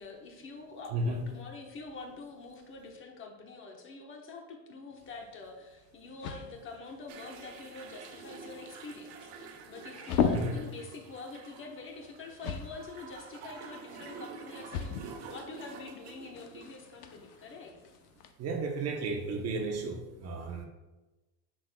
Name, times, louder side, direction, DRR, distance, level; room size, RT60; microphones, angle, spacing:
voice 1, 0.0-17.8, left 3 dB, 25° left, 2 dB, 1.0 m, -46 dB
voice 2, 0.9-1.3 9.9-10.6 13.5-13.6 13.9-14.1 18.4-20.6, right 2 dB, 35° right, 3 dB, 0.8 m, -34 dB
sound 1, 4.9-18.3, left 7 dB, 90° left, 0.9 m, -39 dB
sound 2, 7.1-17.7, right 5 dB, 55° right, 1.2 m, -48 dB
10.0 x 6.3 x 2.2 m, 1.1 s
cardioid pair, 155°, 45 cm